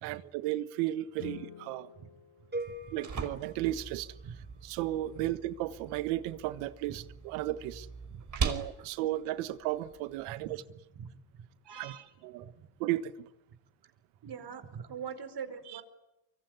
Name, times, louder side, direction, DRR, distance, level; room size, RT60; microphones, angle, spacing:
voice 1, 0.0-1.9 2.9-4.1 4.6-7.9 8.4-10.6 11.8-11.9 12.2-12.5 12.8-13.3, right 15 dB, 90° right, 13 dB, 1.5 m, -34 dB
Guitar, 1.2-3.7, left 11 dB, 70° left, 2.7 m, -50 dB
sound 1, 2.5-4.6, right 2 dB, 20° right, 7.0 m, -42 dB
sound 2, 2.6-10.6, right 5 dB, 40° right, 5.0 m, -41 dB
voice 2, 8.1-8.5 10.3-10.6 10.9-11.1 11.6-12.1 12.4-12.5 13.8-13.9 14.2-15.8, right 7 dB, 55° right, 10 dB, 5.1 m, -43 dB
25.0 x 24.0 x 9.7 m, 0.89 s
supercardioid pair, 75°, 48 cm